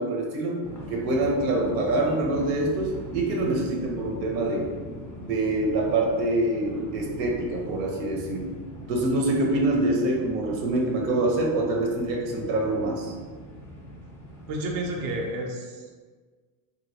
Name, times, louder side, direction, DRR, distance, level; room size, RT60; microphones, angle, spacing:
voice 1, 0.0-4.7 5.2-8.5 8.9-13.1, right 2 dB, 85° right, 0 dB, 0.9 m, -25 dB
sound 1, 0.6-15.3, equal, 5° left, 0.3 m, -41 dB
voice 2, 14.5-16.1, right 1 dB, 45° right, 0 dB, 0.5 m, -31 dB
2.9 x 2.6 x 2.7 m, 1.5 s
supercardioid pair, 115°, 48 cm